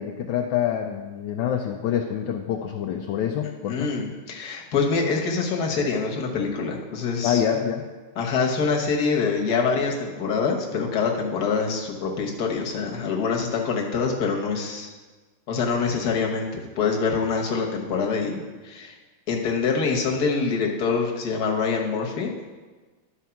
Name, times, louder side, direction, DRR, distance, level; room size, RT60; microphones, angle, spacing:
voice 1, 0.0-3.9 7.2-7.9, left 9 dB, 70° left, 2 dB, 1.2 m, -26 dB
voice 2, 3.7-7.4 8.2-14.9 15.5-18.9 19.3-22.3, left 5 dB, 50° left, 1 dB, 1.5 m, -25 dB
11.5 x 4.6 x 5.8 m, 1.3 s
omnidirectional pair, 2.4 m